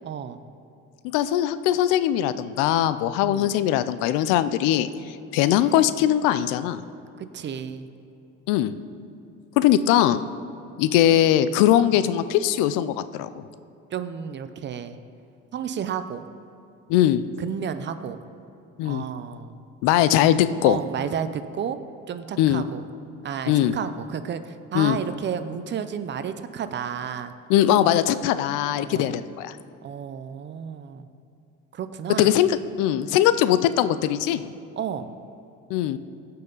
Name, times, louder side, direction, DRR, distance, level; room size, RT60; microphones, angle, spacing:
voice 1, 0.0-0.4 3.2-3.5 7.2-7.9 13.9-15.0 15.5-16.3 17.4-18.2 18.8-19.6 20.6-21.8 22.1-22.8 23.2-27.3 28.7-29.2 29.8-31.1 31.7-32.3 34.8-35.1, right 8 dB, 35° right, 11 dB, 0.5 m, -32 dB
voice 2, 1.1-6.8 8.5-8.7 9.6-10.2 10.8-13.4 16.9-17.2 18.8-19.0 19.8-20.8 22.4-22.6 23.5-23.7 24.7-25.0 27.5-29.6 32.2-34.5 35.7-36.0, left 11 dB, 90° left, 13 dB, 0.5 m, -21 dB
16.0 x 5.7 x 3.9 m, 2.6 s
cardioid pair, 110°, 31 cm